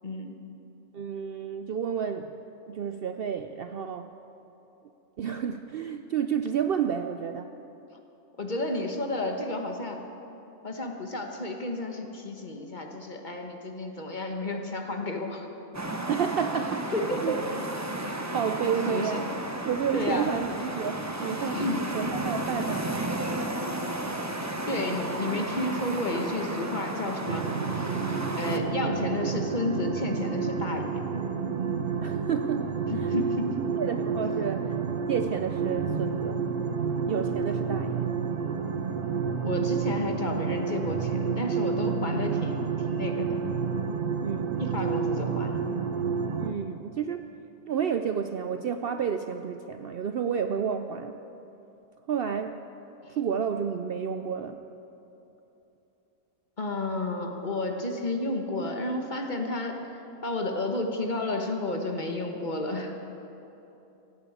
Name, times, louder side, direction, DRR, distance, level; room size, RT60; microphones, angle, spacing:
voice 1, 0.0-0.3 8.4-10.0 10.6-15.5 16.9-17.4 18.9-19.2 19.9-20.3 21.5-21.9 24.7-27.5 28.4-31.0 32.9-33.7 39.4-43.4 44.6-45.6 56.6-59.8 60.2-62.9, left 2 dB, 35° left, 3 dB, 1.3 m, -31 dB
voice 2, 0.9-2.4 2.7-4.1 5.2-7.6 16.1-16.9 17.2-17.4 18.3-19.3 19.7-21.6 21.9-22.9 32.0-33.2 33.8-34.8 35.1-36.5 37.1-38.1 44.2-44.6 46.4-47.3 47.7-51.2 52.1-52.6 53.1-54.6, right 7 dB, 90° right, 8 dB, 0.5 m, -30 dB
sound 1, 15.7-28.6, right 1 dB, 15° right, 0.7 m, -33 dB
sound 2, 27.3-46.5, right 6 dB, 45° right, 0.7 m, -29 dB
16.0 x 9.3 x 8.5 m, 3.0 s
omnidirectional pair, 1.6 m